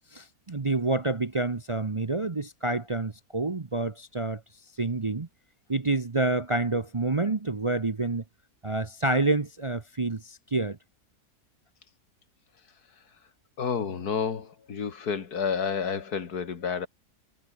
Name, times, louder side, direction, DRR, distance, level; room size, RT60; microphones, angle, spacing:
voice 1, 0.1-4.4 4.8-5.3 5.7-8.2 8.6-10.8, right 2 dB, 30° right, 0.7 m, -28 dB
voice 2, 13.6-16.9, left 6 dB, 80° left, 2.3 m, -30 dB
omnidirectional pair, 1.6 m